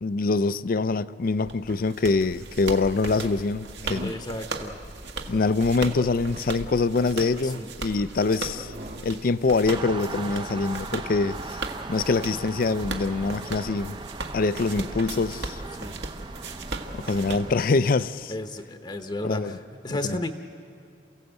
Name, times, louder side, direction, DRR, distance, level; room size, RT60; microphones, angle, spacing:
voice 1, 0.0-4.1 5.3-8.7 9.0-11.6 11.9-14.0 14.3-15.6 16.9-18.3 19.2-19.5 19.9-20.2, left 3 dB, 55° left, 0.5 m, -24 dB
sound 1, 1.4-1.9 2.8-3.0 3.6-4.2 5.0-5.3 5.8-5.9 6.1-6.7 7.5-7.6 8.4-9.1 9.6-9.7, right 1 dB, 55° right, 2.1 m, -42 dB
sound 2, 1.5-18.1, right 3 dB, 75° right, 1.5 m, -37 dB
voice 2, 4.0-4.8 7.4-7.7 15.8-16.0 18.3-20.3, left 1 dB, 25° left, 0.9 m, -33 dB
sound 3, 9.7-17.6, right 3 dB, 25° right, 0.6 m, -38 dB
28.0 x 16.5 x 8.0 m
head